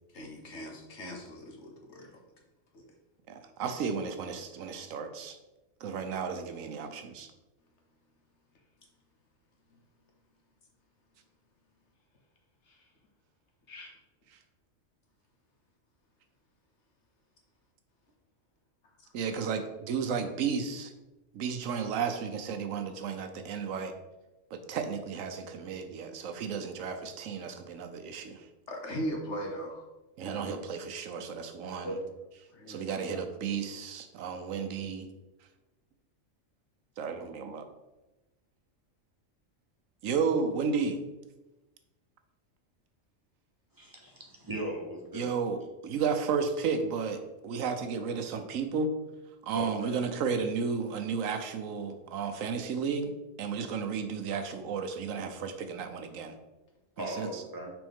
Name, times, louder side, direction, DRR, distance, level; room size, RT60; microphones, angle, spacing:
voice 1, 0.1-2.1 2.7-2.9 9.7-9.8 12.7-12.8 13.7-13.9 19.0-19.1 27.5-27.6 28.7-29.8 30.2-30.5 31.8-32.1 32.5-32.9, equal, 65° left, 1 dB, 1.3 m, -39 dB
voice 2, 3.3-5.4 5.8-7.3 19.1-20.9 21.3-23.9 24.5-28.5 30.2-31.9 32.7-35.1 37.0-37.7 40.0-41.0 45.1-48.9 49.4-56.4 57.0-57.4, right 5 dB, 90° right, 7 dB, 1.1 m, -33 dB
voice 3, 43.8-45.4 49.5-49.9 57.0-57.7, right 1 dB, 20° right, -1 dB, 1.0 m, -38 dB
6.1 x 4.4 x 3.5 m, 1.0 s
omnidirectional pair, 1.3 m